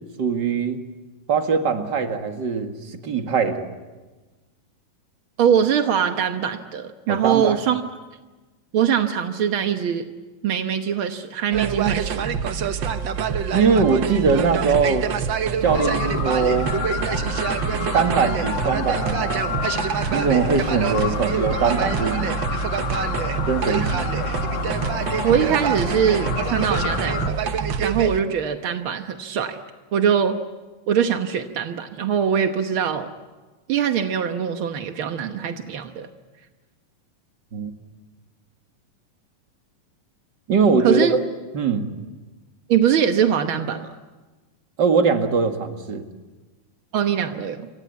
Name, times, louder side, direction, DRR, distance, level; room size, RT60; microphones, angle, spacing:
voice 1, 0.2-0.8 1.3-3.7 7.1-7.6 13.5-15.0 15.6-16.7 17.9-19.6 20.1-22.4 23.5-24.1 37.5-37.7 40.5-41.2 41.5-41.9 44.8-46.1, right 5 dB, 40° right, 5 dB, 2.1 m, -21 dB
voice 2, 5.4-7.8 8.7-10.1 10.4-12.3 25.2-27.4 27.8-29.6 29.9-30.4 30.9-33.1 33.7-36.1 40.8-41.1 42.7-43.9 46.9-47.7, right 8 dB, 70° right, 6 dB, 1.2 m, -22 dB
sound 1, 11.5-28.2, right 7 dB, 85° right, 1.0 m, -26 dB
sound 2, 15.6-27.3, left 6 dB, 90° left, 3.6 m, -29 dB
28.0 x 25.5 x 8.3 m, 1.2 s
omnidirectional pair, 3.9 m